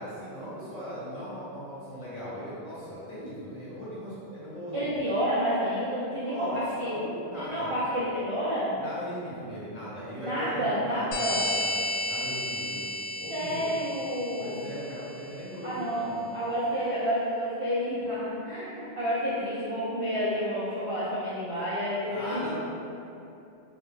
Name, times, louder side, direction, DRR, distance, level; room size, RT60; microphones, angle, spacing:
voice 1, 0.0-4.8 6.1-7.8 8.7-12.9 13.2-13.7 14.4-16.3 22.1-22.5, equal, 40° left, -12 dB, 0.9 m, -38 dB
voice 2, 4.7-6.9 7.3-8.7 10.2-11.4 13.3-14.6 15.6-22.5, equal, 50° right, -10 dB, 0.4 m, -30 dB
sound 1, 11.1-15.4, left 1 dB, 85° left, 0.9 m, -33 dB
2.4 x 2.1 x 3.1 m, 2.7 s
omnidirectional pair, 1.2 m